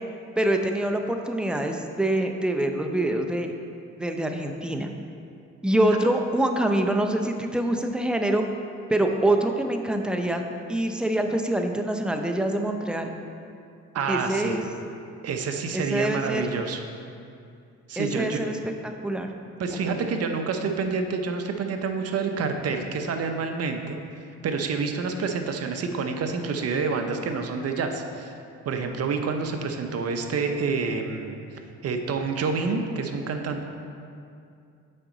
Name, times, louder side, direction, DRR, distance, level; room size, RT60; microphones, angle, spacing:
voice 1, 0.4-3.5 4.0-4.9 5.6-8.4 8.9-10.4 10.7-13.1 14.1-14.6 15.7-16.5 18.0-19.3 19.7-20.1, right 1 dB, 5° right, 4 dB, 0.5 m, -25 dB
voice 2, 13.9-14.6 15.2-16.8 17.9-18.4 19.6-24.0 24.4-28.3 28.7-31.4 31.8-33.6, right 4 dB, 55° right, 5 dB, 0.7 m, -28 dB
7.7 x 5.1 x 3.8 m, 2.5 s
cardioid pair, 90°, 30 cm